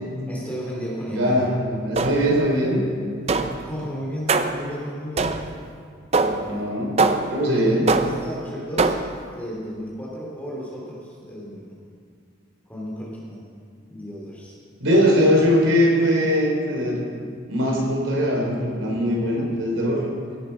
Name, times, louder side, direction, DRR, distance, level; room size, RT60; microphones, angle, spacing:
voice 1, 0.3-1.5 3.6-5.5 6.2-6.5 7.4-9.0 9.3-11.8 12.7-13.4 13.9-14.6, equal, 10° left, -4 dB, 2.7 m, -33 dB
voice 2, 1.1-2.8 6.5-7.0 7.3-7.8 14.8-17.0 17.5-20.0, equal, 80° right, -1 dB, 3.4 m, -21 dB
sound 1, 2.0-2.5 3.3-3.7 4.3-4.7 5.2-5.6 6.1-6.5 7.0-7.5 7.9-8.3 8.8-9.2, right 3 dB, 30° right, 0.5 m, -22 dB
16.5 x 9.1 x 5.6 m, 2.2 s
head